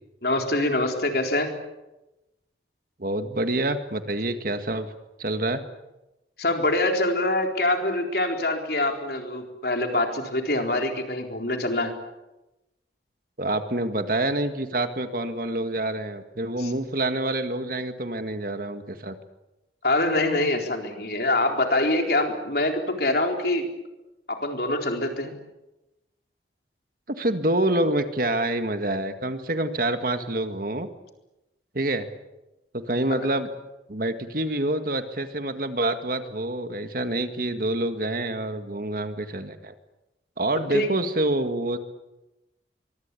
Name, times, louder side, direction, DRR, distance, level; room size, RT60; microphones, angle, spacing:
voice 1, 0.2-1.5 6.4-11.9 16.6-16.7 19.8-23.7 24.3-25.3 40.7-40.9, left 2 dB, 55° left, 3 dB, 4.1 m, -24 dB
voice 2, 3.0-4.9 5.2-5.6 13.4-19.2 27.1-30.9 31.7-32.1 32.7-33.5 33.9-39.7 40.4-41.8, right 1 dB, 50° right, 8 dB, 1.9 m, -27 dB
24.0 x 24.0 x 8.5 m, 0.97 s
head